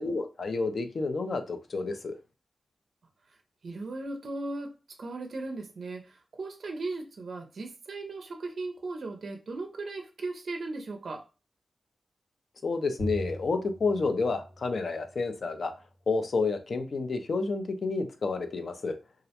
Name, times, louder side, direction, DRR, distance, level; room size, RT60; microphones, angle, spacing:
voice 1, 0.0-2.1 12.6-15.7 16.1-19.0, left 3 dB, 55° left, 0.4 m, -30 dB
voice 2, 3.6-4.7 5.0-11.3, right 2 dB, 60° right, 0.4 m, -37 dB
Bowed string instrument, 13.0-15.5, equal, 70° left, 0.9 m, -41 dB
2.3 x 2.1 x 2.8 m
wide cardioid pair, 145°, 0 cm